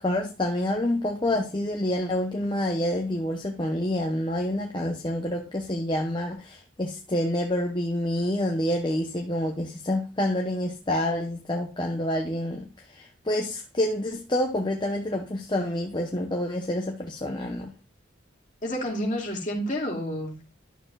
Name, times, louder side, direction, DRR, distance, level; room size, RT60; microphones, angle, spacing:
voice 1, 0.0-17.7, left 1 dB, 25° left, 0.8 m, -28 dB
voice 2, 18.6-20.5, equal, 40° left, 2.3 m, -29 dB
11.0 x 6.7 x 2.3 m
head